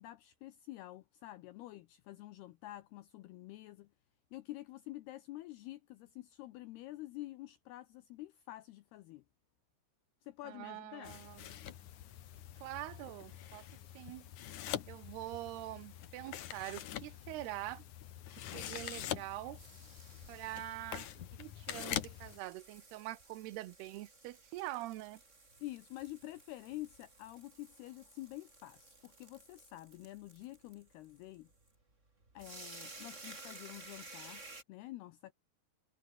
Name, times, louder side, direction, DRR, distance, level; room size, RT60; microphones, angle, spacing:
voice 1, 0.0-3.9 4.3-9.2 10.2-11.1 25.6-31.5 32.3-35.3, left 16 dB, 85° left, 2.3 m, -48 dB
voice 2, 10.4-11.5 12.6-13.7 13.9-14.3 14.9-17.8 18.3-19.6 20.3-25.2, right 17 dB, 75° right, 2.5 m, -44 dB
sound 1, 11.0-22.4, left 11 dB, 60° left, 2.0 m, -44 dB
sound 2, 19.0-34.6, right 3 dB, 15° right, 3.4 m, -55 dB
omnidirectional pair, 5.6 m